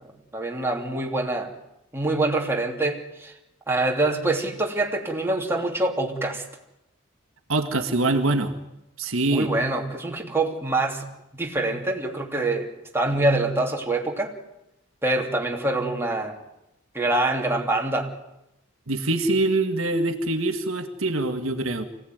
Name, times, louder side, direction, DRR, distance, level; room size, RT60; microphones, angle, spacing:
voice 1, 0.3-1.5 1.9-3.3 3.7-6.4 9.3-11.1 11.3-14.3 15.0-16.4 16.9-18.1, right 2 dB, 10° right, 0 dB, 3.0 m, -25 dB
voice 2, 7.5-8.5 9.0-9.5 18.9-21.8, right 2 dB, 70° right, 7 dB, 1.9 m, -24 dB
25.5 x 17.0 x 9.5 m, 0.88 s
head